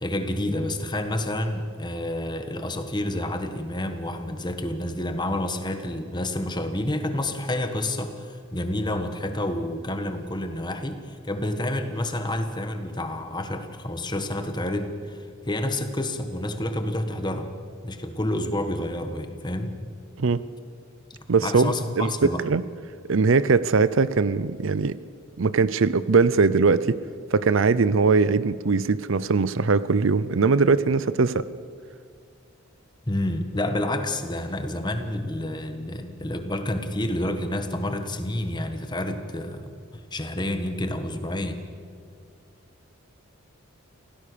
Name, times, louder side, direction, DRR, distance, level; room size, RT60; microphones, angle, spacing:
voice 1, 0.0-15.2 15.5-17.5 17.8-19.7 21.1-22.4 33.1-39.7 40.1-41.6, left 1 dB, 20° left, 7 dB, 1.5 m, -29 dB
voice 2, 21.3-22.6 23.1-25.0 25.4-27.0 27.3-31.5, right 4 dB, 65° right, 17 dB, 0.6 m, -21 dB
26.0 x 17.0 x 6.9 m, 2.2 s
head